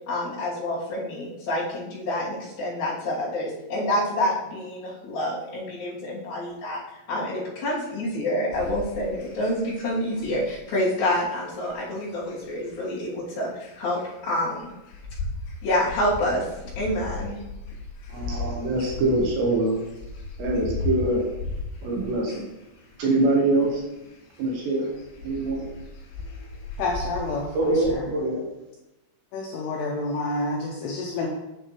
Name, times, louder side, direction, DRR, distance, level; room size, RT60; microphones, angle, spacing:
voice 1, 0.1-6.8 7.1-14.0 14.2-14.7 15.6-16.5 16.8-17.4, left 1 dB, 50° left, -8 dB, 3.9 m, -27 dB
sound 1, 8.5-27.9, left 3 dB, 70° left, 3.5 m, -37 dB
voice 2, 18.1-19.7 20.4-21.3 21.8-22.4 23.0-23.8 24.4-24.9 25.2-25.7 27.5-28.5, right 2 dB, 70° right, -2 dB, 3.1 m, -24 dB
voice 3, 26.8-28.1 29.3-31.3, left 2 dB, 90° left, -1 dB, 2.4 m, -29 dB
8.4 x 6.5 x 3.1 m, 0.98 s
omnidirectional pair, 5.8 m